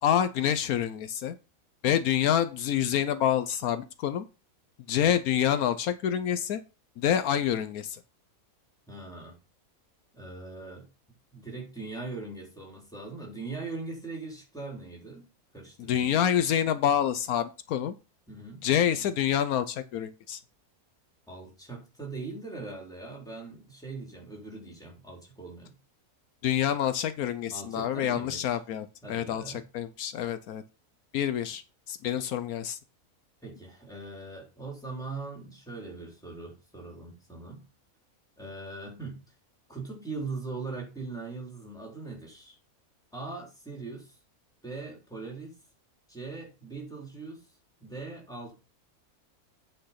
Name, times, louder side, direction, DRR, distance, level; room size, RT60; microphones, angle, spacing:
voice 1, 0.0-1.4 1.8-4.3 4.9-6.6 7.0-8.0 15.8-17.9 18.6-20.4 26.4-30.6 31.1-31.6 31.9-32.8, left 10 dB, 80° left, 11 dB, 1.2 m, -27 dB
voice 2, 8.9-9.3 10.1-10.9 11.3-15.3 15.5-16.2 18.3-18.6 21.3-25.7 27.5-28.6 29.0-29.6 33.4-37.6 38.4-39.2 39.7-42.6 43.1-44.2 44.6-45.6 46.1-47.5 47.8-48.5, right 3 dB, ahead, -1 dB, 3.7 m, -40 dB
8.8 x 5.5 x 5.8 m, 0.31 s
omnidirectional pair, 1.5 m